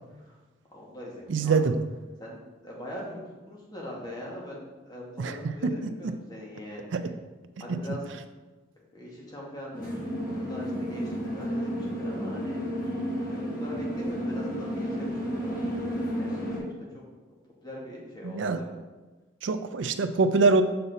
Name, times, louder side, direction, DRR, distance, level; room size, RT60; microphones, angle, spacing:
voice 1, 0.7-1.6 2.2-7.1 7.6-8.0 8.9-12.6 13.2-15.6 15.9-17.0 17.6-18.8, left 1 dB, 20° left, -3 dB, 1.7 m, -42 dB
voice 2, 1.3-1.7 5.2-5.3 5.6-5.7 6.9-7.1 7.7-7.8 18.2-18.6 19.4-20.6, right 4 dB, 75° right, 10 dB, 0.4 m, -24 dB
sound 1, 9.7-16.6, equal, 45° left, 1.9 m, -32 dB
6.7 x 5.6 x 4.0 m, 1.2 s
head